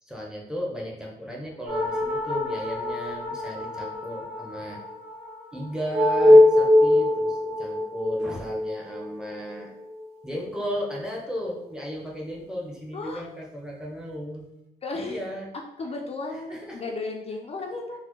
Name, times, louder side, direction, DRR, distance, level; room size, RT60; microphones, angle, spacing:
voice 1, 0.0-4.8 5.5-9.7 10.2-14.5 14.9-15.5 16.3-16.8, equal, 5° right, -3 dB, 0.7 m, -35 dB
sound 1, 1.7-10.5, left 1 dB, 85° right, 0.7 m, -23 dB
voice 2, 14.8-15.3 15.8-18.0, left 3 dB, 40° left, 1 dB, 0.4 m, -34 dB
4.1 x 2.0 x 3.0 m, 0.84 s
cardioid pair, 110°, 16 cm